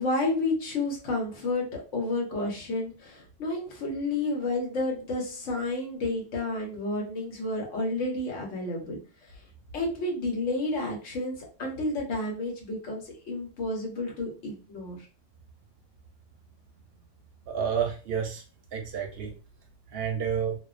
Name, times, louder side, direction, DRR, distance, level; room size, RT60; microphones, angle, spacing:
voice 1, 0.0-9.4 9.7-15.1, left 2 dB, 80° left, 0 dB, 1.2 m, -31 dB
voice 2, 17.5-18.4 18.7-19.3 19.9-20.6, right 7 dB, 65° right, 3 dB, 0.7 m, -29 dB
2.6 x 2.2 x 2.4 m, 0.36 s
omnidirectional pair, 1.3 m